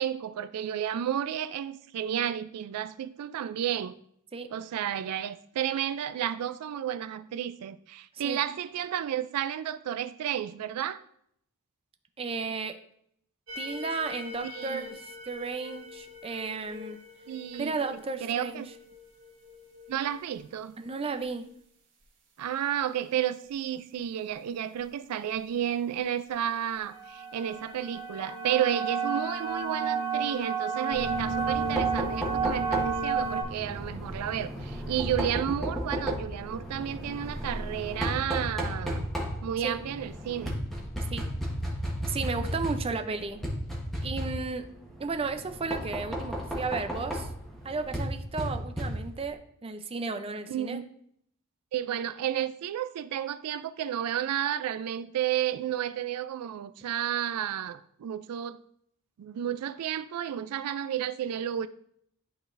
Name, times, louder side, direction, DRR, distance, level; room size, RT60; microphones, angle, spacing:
voice 1, 0.0-3.9 4.5-11.0 14.4-14.9 17.3-18.7 19.9-20.7 22.4-39.1 39.4-40.6 50.5-50.8 51.7-58.6 59.2-61.7, right 10 dB, 85° right, 0.3 m, -32 dB
voice 2, 12.2-12.7 13.6-17.0 17.6-18.6 20.8-21.5 39.6-39.8 41.1-41.2 42.1-43.4 44.0-44.7 45.0-47.3 47.6-50.8, right 4 dB, 25° right, 0.5 m, -34 dB
sound 1, 13.5-19.9 26.7-33.4, right 5 dB, 60° right, 1.8 m, -33 dB
Knock, 30.9-49.3, equal, ahead, 1.2 m, -34 dB
11.5 x 3.9 x 2.5 m
head